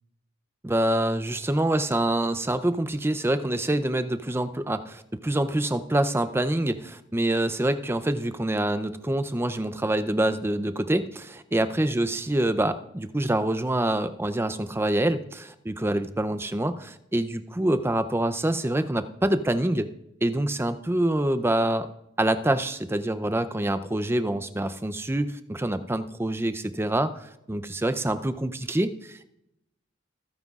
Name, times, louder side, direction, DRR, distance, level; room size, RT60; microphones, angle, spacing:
voice 1, 0.6-19.9 20.2-21.9 22.2-29.3, right 1 dB, 10° right, 11 dB, 0.5 m, -26 dB
25.5 x 9.2 x 2.4 m, 0.84 s
head